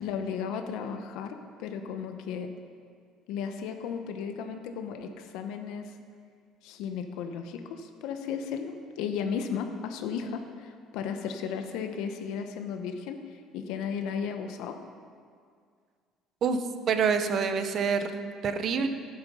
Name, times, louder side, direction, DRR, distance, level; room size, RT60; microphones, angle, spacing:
voice 1, 0.0-2.5 3.3-5.9 6.6-13.2 13.5-14.8, left 6 dB, 70° left, 6 dB, 0.9 m, -35 dB
voice 2, 16.4-18.9, right 5 dB, 40° right, 9 dB, 0.8 m, -27 dB
13.5 x 7.9 x 5.5 m, 2.1 s
cardioid pair, 165°, 0 cm